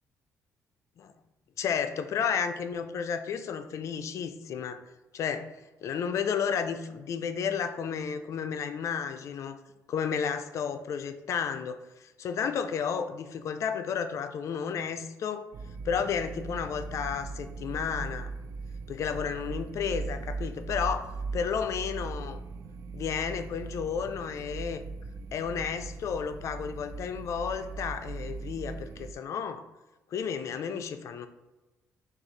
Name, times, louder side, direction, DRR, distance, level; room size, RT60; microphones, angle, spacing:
voice 1, 1.6-4.8 5.1-5.5 5.8-9.6 9.9-15.5 15.8-18.3 18.9-22.4 22.9-24.8 25.3-29.6 30.1-31.3, left 7 dB, 60° left, 8 dB, 0.4 m, -32 dB
sound 1, 15.5-29.1, right 4 dB, 60° right, 0.4 m, -39 dB
6.3 x 2.4 x 3.1 m, 1.1 s
cardioid pair, 110°, 6 cm